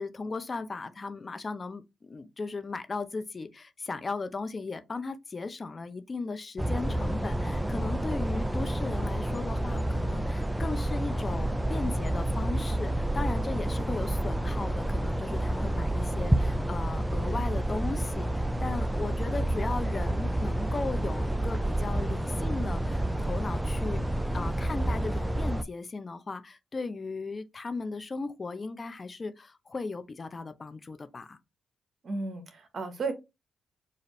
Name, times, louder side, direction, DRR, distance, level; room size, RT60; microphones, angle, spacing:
voice 1, 0.0-24.0 24.3-31.4, left 3 dB, 40° left, 0.6 m, -37 dB
sound 1, 6.6-25.6, right 1 dB, 10° right, 0.4 m, -29 dB
voice 2, 32.0-33.1, right 3 dB, 55° right, 1.0 m, -33 dB
4.1 x 2.6 x 3.1 m
supercardioid pair, 55°, 0 cm